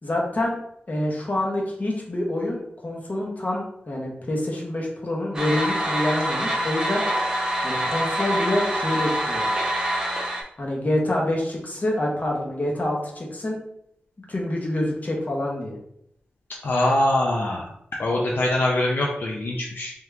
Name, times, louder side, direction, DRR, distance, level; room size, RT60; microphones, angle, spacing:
voice 1, 0.0-0.6 0.9-7.0 7.6-9.5 10.6-13.6 14.3-15.8, left 1 dB, 45° left, -2 dB, 1.1 m, -26 dB
sound 1, 5.3-10.4, equal, 20° right, 1.0 m, -25 dB
voice 2, 16.6-17.7 18.0-19.9, left 1 dB, 70° left, -2 dB, 0.6 m, -23 dB
3.6 x 2.9 x 3.4 m, 0.74 s
wide cardioid pair, 85°, 4 cm